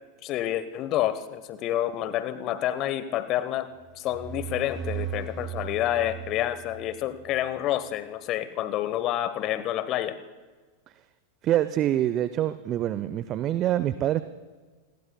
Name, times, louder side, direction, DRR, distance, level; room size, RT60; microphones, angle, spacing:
voice 1, 0.2-10.2, left 12 dB, 35° left, 14 dB, 1.0 m, -28 dB
sound 1, 3.8-7.4, right 8 dB, 10° right, 3.9 m, -37 dB
voice 2, 11.4-14.2, right 12 dB, 35° right, 14 dB, 0.6 m, -25 dB
29.0 x 21.5 x 2.2 m, 1.4 s
figure-of-eight pair, 90°, 0 cm